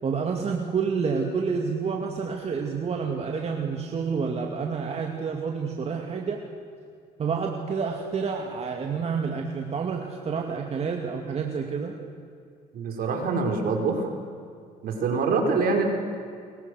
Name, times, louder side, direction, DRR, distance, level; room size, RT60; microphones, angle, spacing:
voice 1, 0.0-6.4 7.2-11.9, right 5 dB, 40° right, 1 dB, 2.5 m, -29 dB
voice 2, 12.7-14.1 14.8-15.8, right 4 dB, 60° right, 2 dB, 5.3 m, -25 dB
30.0 x 22.5 x 6.5 m, 2.3 s
cardioid pair, 110°, 17 cm